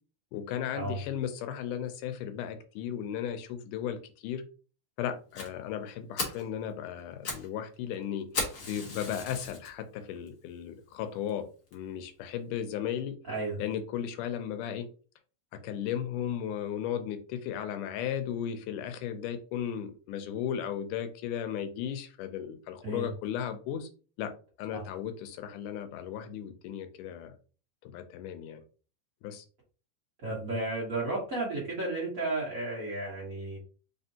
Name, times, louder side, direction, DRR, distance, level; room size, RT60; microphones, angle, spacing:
voice 1, 0.3-4.5 5.0-8.3 8.6-13.2 13.6-14.9 15.5-23.9 24.2-24.3 24.6-27.3 27.8-28.6 29.2-29.5, left 9 dB, 85° left, 8 dB, 2.1 m, -35 dB
Fire, 5.3-5.5 5.9-6.0 6.2-6.5 7.0-7.5 7.7-7.8 8.3-9.7 10.3-10.4 10.9-11.0 11.3-11.4 11.7-11.8, left 3 dB, 65° left, 0.9 m, -35 dB
voice 2, 30.2-33.6, right 2 dB, 75° right, -5 dB, 0.7 m, -33 dB
4.3 x 3.7 x 2.8 m, 0.39 s
omnidirectional pair, 3.7 m